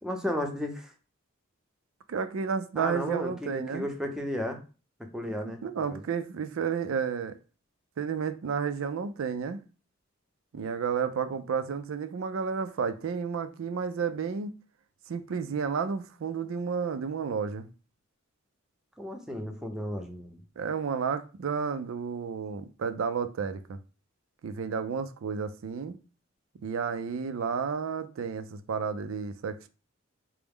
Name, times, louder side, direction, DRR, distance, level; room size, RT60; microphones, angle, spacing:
voice 1, 0.0-0.9 2.8-4.6 5.1-5.6 5.9-6.0 19.0-20.4, left 1 dB, 5° right, 0.6 m, -34 dB
voice 2, 2.1-3.9 5.4-7.4 8.0-9.6 10.5-14.5 15.1-17.7 20.6-23.8 24.4-26.0 26.6-29.7, right 6 dB, 80° right, 0.4 m, -31 dB
4.6 x 2.0 x 3.5 m
head